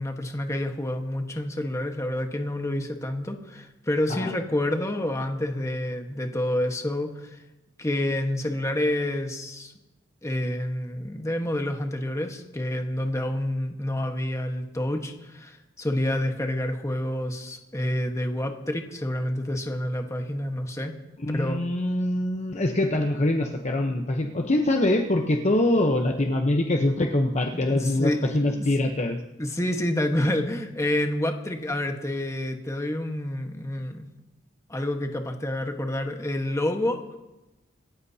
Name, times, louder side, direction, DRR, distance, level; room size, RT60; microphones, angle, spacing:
voice 1, 0.0-7.4 7.8-9.7 10.2-20.9 21.3-21.6 27.5-28.6 29.4-34.1 34.7-37.2, left 1 dB, 15° left, 4 dB, 1.4 m, -28 dB
voice 2, 21.2-29.2, left 1 dB, 35° left, 3 dB, 0.9 m, -24 dB
26.5 x 14.0 x 2.8 m, 1.0 s
head